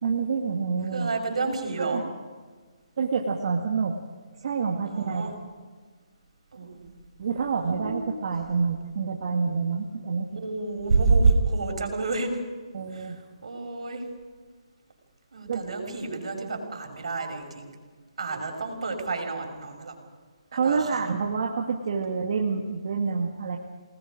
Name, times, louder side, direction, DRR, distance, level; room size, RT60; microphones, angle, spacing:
voice 1, 0.0-1.1 1.8-2.1 3.0-4.0 4.4-5.2 7.2-10.4 12.7-13.2 15.5-15.6 20.5-23.6, right 5 dB, 50° right, 1 dB, 2.0 m, -27 dB
voice 2, 0.9-2.0 4.8-5.3 6.5-6.9 7.6-8.2 10.3-12.3 12.9-13.1 13.4-14.0 15.3-17.7 18.2-19.9 20.6-21.0, right 3 dB, 70° right, 3 dB, 6.0 m, -28 dB
28.5 x 20.0 x 5.2 m, 1.5 s
hypercardioid pair, 160°, 3 cm